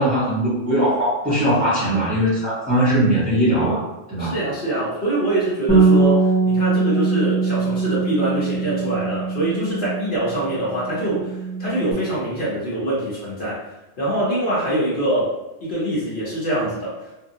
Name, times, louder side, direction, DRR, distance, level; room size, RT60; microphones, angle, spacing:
voice 1, 0.0-4.4, equal, 10° right, -12 dB, 0.7 m, -20 dB
voice 2, 4.2-13.6 14.0-15.3 15.6-16.9, right 1 dB, 65° left, -8 dB, 1.1 m, -24 dB
Bass guitar, 5.7-10.4 10.6-11.9, right 4 dB, 10° left, 0.4 m, -21 dB
2.7 x 2.1 x 2.6 m, 1.0 s
omnidirectional pair, 1.1 m